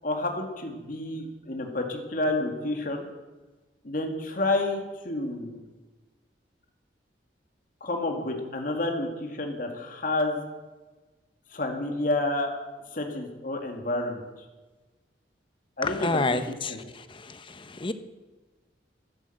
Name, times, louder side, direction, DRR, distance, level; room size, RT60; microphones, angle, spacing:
voice 1, 0.0-3.0 3.8-5.6 7.8-10.4 11.5-12.5 12.9-14.2 15.8-16.8, left 2 dB, 50° left, 3 dB, 2.1 m, -29 dB
voice 2, 15.8-16.8 17.3-17.9, left 3 dB, 30° left, 10 dB, 0.9 m, -28 dB
13.0 x 11.5 x 7.8 m, 1.2 s
head